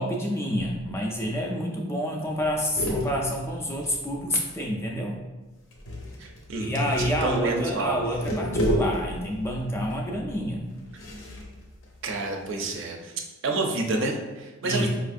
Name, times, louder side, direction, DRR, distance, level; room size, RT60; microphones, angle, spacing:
voice 1, 0.0-5.2 6.6-10.7 14.6-14.9, equal, 15° left, -1 dB, 0.3 m, -28 dB
sound 1, 0.6-1.0 1.3-1.4 1.7-1.9 2.3-4.6 5.7-12.6, equal, 65° left, 0.6 m, -33 dB
voice 2, 6.2-8.0 12.0-13.1 13.4-14.9, right 2 dB, 60° right, 2 dB, 0.4 m, -29 dB
4.1 x 2.5 x 2.4 m, 1.2 s
head